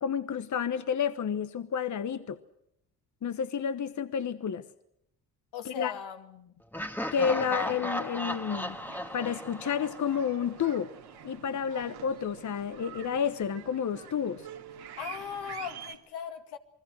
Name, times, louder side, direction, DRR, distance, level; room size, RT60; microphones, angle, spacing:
voice 1, 0.0-2.4 3.2-4.6 5.6-5.9 7.1-8.8 9.1-10.9 11.2-14.5, left 7 dB, 50° left, 12 dB, 1.1 m, -30 dB
voice 2, 5.5-6.5 15.0-16.6, left 8 dB, 85° left, 6 dB, 2.2 m, -39 dB
Laughter, 6.7-10.6, equal, 5° left, 1.6 m, -36 dB
sound 1, 8.3-16.0, right 9 dB, 80° right, 2.4 m, -47 dB
29.0 x 20.5 x 6.4 m, 0.76 s
cardioid pair, 80°, 38 cm